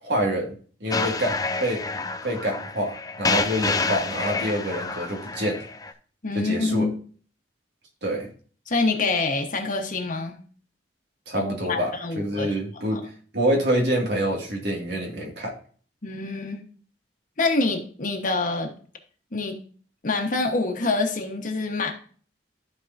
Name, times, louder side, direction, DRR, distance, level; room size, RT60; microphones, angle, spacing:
voice 1, 0.0-0.5 0.8-1.8 2.2-5.6 6.3-6.9 8.0-8.3 11.3-11.9 12.2-13.0 13.3-15.5, equal, 70° right, 0 dB, 2.2 m, -26 dB
sound 1, 0.9-5.9, left 3 dB, 20° left, 0.5 m, -28 dB
voice 2, 6.2-6.9 8.7-10.3 11.3-12.5 12.9-13.0 16.0-16.6 17.4-18.7 19.3-19.6 20.0-21.9, left 3 dB, 50° left, 2 dB, 1.2 m, -26 dB
14.0 x 4.7 x 2.6 m, 0.43 s
head